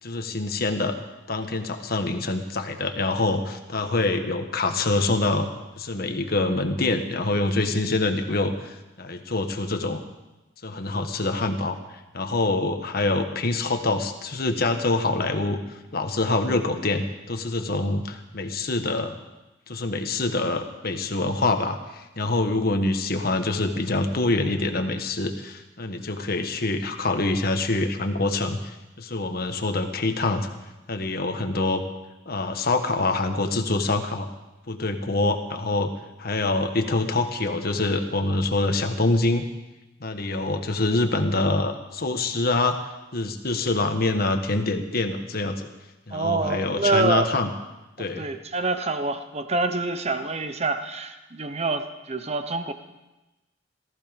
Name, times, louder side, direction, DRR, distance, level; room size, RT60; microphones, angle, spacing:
voice 1, 0.0-1.0 1.3-5.5 5.8-10.0 10.6-19.2 19.7-30.5 30.9-31.8 32.2-34.3 34.7-35.9 36.2-39.4 40.0-42.8 43.1-45.7 46.1-47.5 48.0-48.3, left 2 dB, 50° left, 6 dB, 1.5 m, -25 dB
voice 2, 46.1-47.3 48.0-52.7, right 3 dB, 35° right, 9 dB, 1.0 m, -27 dB
18.0 x 14.5 x 5.3 m, 1.0 s
head